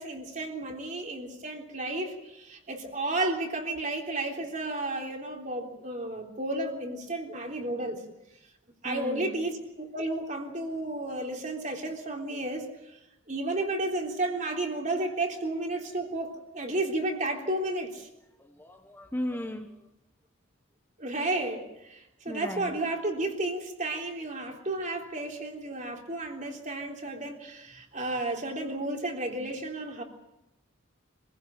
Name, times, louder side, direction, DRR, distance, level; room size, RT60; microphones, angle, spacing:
voice 1, 0.0-8.0 8.8-12.7 13.3-18.1 21.0-30.0, right 2 dB, 40° right, 1 dB, 3.5 m, -32 dB
voice 2, 8.8-9.5 18.4-19.9 22.3-22.8, left 1 dB, 10° left, 4 dB, 1.3 m, -36 dB
25.5 x 16.0 x 9.0 m, 0.90 s
head